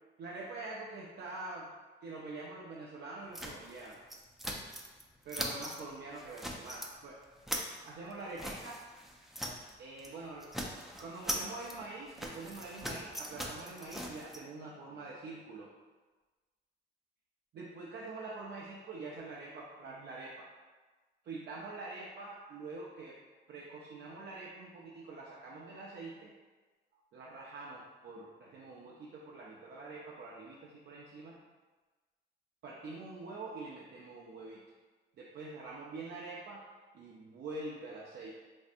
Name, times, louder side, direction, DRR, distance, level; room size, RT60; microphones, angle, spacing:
voice 1, 0.2-1.7 2.0-4.0 5.2-7.2 7.8-8.8 9.8-10.5 11.0-15.7 17.5-20.5 21.2-23.2 23.5-26.3 27.1-31.4 32.6-34.6 35.2-36.7 36.9-38.3, right 3 dB, 60° right, -4 dB, 0.5 m, -45 dB
sound 1, 3.3-5.0 5.3-5.8 6.2-6.9 7.2-9.7 10.0-10.2 10.4-14.4, equal, ahead, 0.4 m, -41 dB
3.2 x 2.6 x 2.5 m, 1.3 s
cardioid pair, 90°, 20 cm